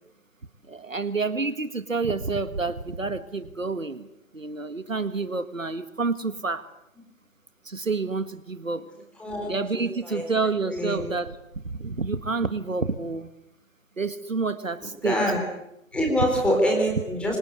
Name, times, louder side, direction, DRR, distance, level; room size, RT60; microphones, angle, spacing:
voice 1, 0.7-4.1 4.3-6.7 7.6-8.9 9.5-11.4 11.6-13.3 14.0-15.3, right 4 dB, 70° right, 12 dB, 2.0 m, -28 dB
voice 2, 9.2-10.3 10.7-11.1 15.0-15.4 15.9-17.4, equal, 5° left, 0 dB, 4.2 m, -25 dB
27.5 x 26.0 x 8.2 m, 0.83 s
figure-of-eight pair, 150°, 41 cm